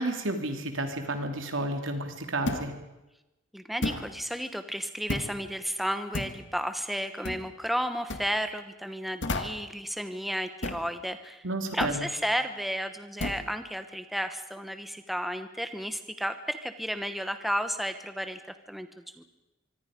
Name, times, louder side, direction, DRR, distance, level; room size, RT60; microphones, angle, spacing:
voice 1, 0.0-2.7 11.4-12.0, right 2 dB, 85° right, 5 dB, 3.1 m, -31 dB
sound 1, 2.5-2.8 3.8-4.1 5.1-5.4 6.1-6.4 7.2-7.5 8.1-8.3 9.2-9.7 10.6-10.9 11.8-12.0 13.2-13.5, left 2 dB, 65° left, 1.9 m, -32 dB
voice 2, 3.5-11.5 11.7-18.4 18.7-19.2, equal, ahead, 8 dB, 1.0 m, -33 dB
24.5 x 24.5 x 5.2 m, 0.99 s
head